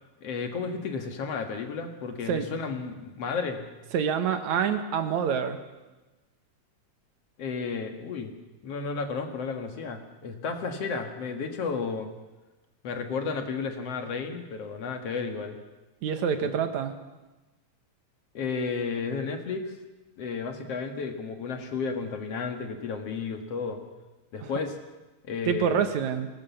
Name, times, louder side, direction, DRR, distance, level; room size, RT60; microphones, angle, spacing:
voice 1, 0.2-3.7 7.4-8.3 8.6-12.1 12.8-15.6 16.4-16.5 18.3-19.7 20.2-23.8 24.3-24.8 25.3-25.8, left 5 dB, 60° left, 6 dB, 2.6 m, -32 dB
voice 2, 3.9-5.6 16.0-16.9 25.5-26.3, right 7 dB, 75° right, 8 dB, 2.7 m, -26 dB
22.0 x 19.0 x 7.1 m, 1.1 s
omnidirectional pair, 3.4 m